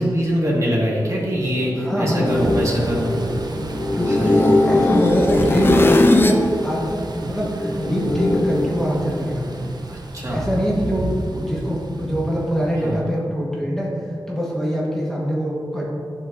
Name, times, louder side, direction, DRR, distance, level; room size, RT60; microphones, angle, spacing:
voice 1, 0.0-3.2 4.0-4.5 9.9-10.4 12.8-13.1, equal, 40° right, -5 dB, 1.8 m, -23 dB
sound 1, 1.2-6.5 6.8-8.7, left 2 dB, 30° left, 0.6 m, -20 dB
voice 2, 1.8-2.3 3.9-9.7 10.3-11.0 11.3-13.9 14.3-15.9, equal, 5° left, -5 dB, 1.3 m, -23 dB
Thunder / Rain, 2.2-13.0, right 2 dB, 60° right, 0.7 m, -31 dB
11.0 x 5.7 x 2.6 m, 2.5 s
wide cardioid pair, 80°, 8 cm